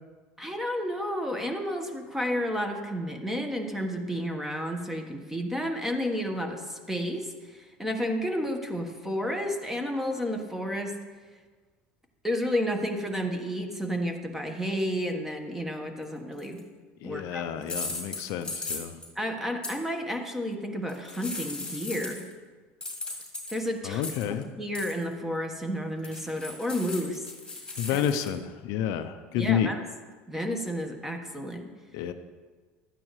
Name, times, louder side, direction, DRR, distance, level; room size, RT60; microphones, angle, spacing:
voice 1, 0.4-10.9 12.2-16.6 17.0-17.4 19.1-22.2 23.5-24.0 24.5-27.3 27.9-28.0 29.4-29.8 30.3-31.7, equal, 5° right, 4 dB, 1.3 m, -31 dB
sound 1, 16.4-16.6 17.6-19.1 19.6-19.7 20.9-22.3 22.8-24.4 24.8-25.0 26.0-28.3, left 3 dB, 15° left, 2.1 m, -37 dB
voice 2, 17.0-19.0 23.8-24.5 27.8-29.7 31.9-32.1, left 9 dB, 70° left, 9 dB, 0.6 m, -29 dB
12.0 x 8.9 x 3.2 m, 1.4 s
supercardioid pair, 95°, 6 cm